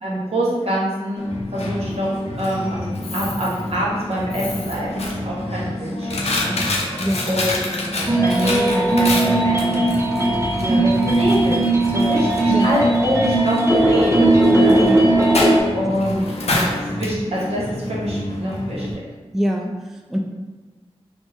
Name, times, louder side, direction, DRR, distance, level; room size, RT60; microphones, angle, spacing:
voice 1, 0.0-9.8 10.2-10.3 10.7-11.6 11.9-14.8 15.7-19.0, equal, 70° right, -6 dB, 1.0 m, -26 dB
Coin (dropping), 1.2-18.9, left 1 dB, 80° left, 0.5 m, -27 dB
voice 2, 7.0-7.3 10.6-10.9 12.5-12.7 14.7-15.1 15.9-16.0 16.5-16.7 19.3-20.2, equal, 5° right, 1 dB, 0.3 m, -24 dB
sound 1, 8.1-15.6, right 2 dB, 25° right, 0.9 m, -18 dB
3.4 x 2.0 x 3.3 m, 1.3 s
wide cardioid pair, 55°, 11 cm